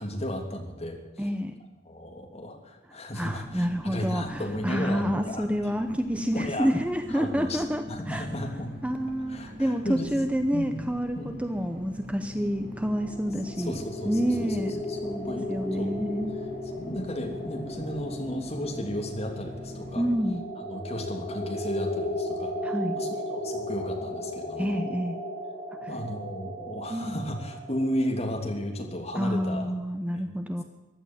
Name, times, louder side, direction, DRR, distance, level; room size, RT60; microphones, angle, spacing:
voice 1, 0.0-1.3 1.8-5.4 6.3-6.7 7.1-8.7 9.3-10.1 10.5-10.9 11.1-11.3 13.6-14.6 14.9-15.5 15.8-15.9 16.7-20.0 20.5-22.5 22.9-24.7 25.9-29.7 30.1-30.2, equal, 35° left, 2 dB, 3.1 m, -34 dB
voice 2, 1.2-1.6 3.1-8.3 8.8-13.8 14.0-16.5 20.0-20.4 22.6-23.0 24.6-25.2 25.8-25.9 26.9-27.2 29.1-30.6, equal, 5° right, 7 dB, 0.8 m, -28 dB
sound 1, 3.4-20.2, equal, 60° right, 6.4 m, -43 dB
sound 2, 12.3-29.2, left 1 dB, 20° left, 4.1 m, -36 dB
15.5 x 11.5 x 7.4 m, 1.2 s
head